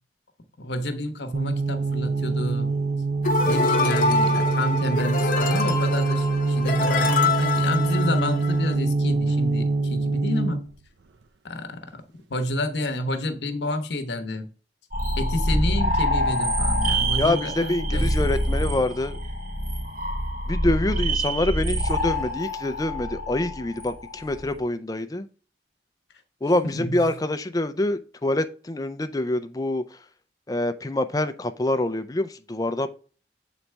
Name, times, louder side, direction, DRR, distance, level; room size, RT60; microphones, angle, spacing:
voice 1, 0.6-2.7 3.4-10.6 11.4-12.0 12.3-14.5 15.2-18.1 26.6-27.0, left 1 dB, 75° left, 0.9 m, -30 dB
sound 1, 1.3-10.7, right 3 dB, 85° right, 0.6 m, -24 dB
sound 2, 3.2-8.7, left 3 dB, 50° left, 0.9 m, -25 dB
sound 3, 14.9-24.5, equal, 50° right, 2.8 m, -26 dB
voice 2, 17.2-19.1 20.5-25.3 26.4-29.8 30.5-32.9, left 1 dB, 20° left, 0.5 m, -26 dB
7.3 x 4.1 x 3.3 m
head